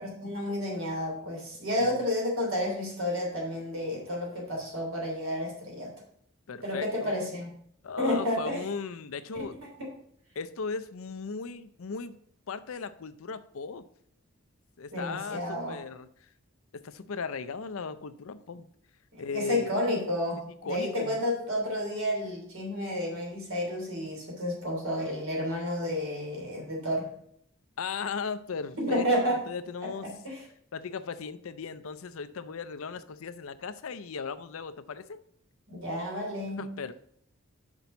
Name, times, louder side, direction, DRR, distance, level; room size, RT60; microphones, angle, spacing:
voice 1, 0.0-5.9 6.6-7.5 8.0-8.6 9.3-9.4 9.8-9.9 14.9-15.8 19.1-27.1 28.8-29.4 29.8-30.4 35.7-36.7, left 1 dB, 70° right, -1 dB, 3.1 m, -31 dB
voice 2, 6.5-7.2 7.8-9.6 10.4-12.2 12.5-13.9 14.8-16.3 16.7-18.7 19.2-19.7 20.6-21.2 27.8-30.1 30.7-35.2 36.6-36.9, left 5 dB, 75° left, 13 dB, 0.5 m, -37 dB
6.0 x 5.3 x 6.9 m, 0.67 s
head